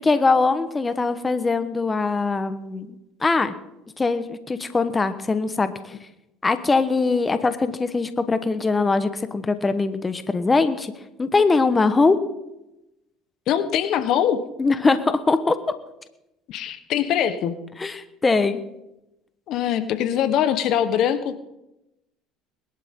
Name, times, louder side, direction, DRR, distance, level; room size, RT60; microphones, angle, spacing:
voice 1, 0.0-3.5 4.0-5.9 6.4-10.9 11.2-12.2 14.6-15.6 17.8-18.6, left 3 dB, 20° left, 11 dB, 1.1 m, -22 dB
voice 2, 13.5-14.4 16.5-17.5 19.5-21.4, left 9 dB, 60° left, 11 dB, 1.2 m, -22 dB
21.0 x 12.0 x 3.8 m, 0.90 s
supercardioid pair, 95°, 0 cm